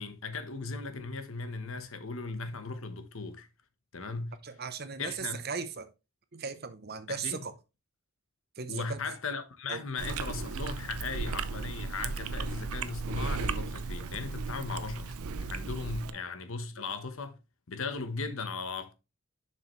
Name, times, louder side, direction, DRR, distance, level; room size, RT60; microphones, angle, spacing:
voice 1, 0.0-3.5 3.9-4.3 5.0-5.4 7.1-7.4 8.7-15.1 15.4-17.4 17.7-18.9, left 4 dB, 70° left, 1.1 m, -37 dB
voice 2, 4.4-5.9 6.3-7.5 8.6-9.0 9.7-9.8 13.9-14.1 16.0-16.2 16.6-16.7, right 5 dB, 45° right, 0.8 m, -38 dB
Chewing mastication, 10.0-16.1, right 4 dB, 90° right, 0.6 m, -35 dB
7.4 x 5.9 x 3.1 m
head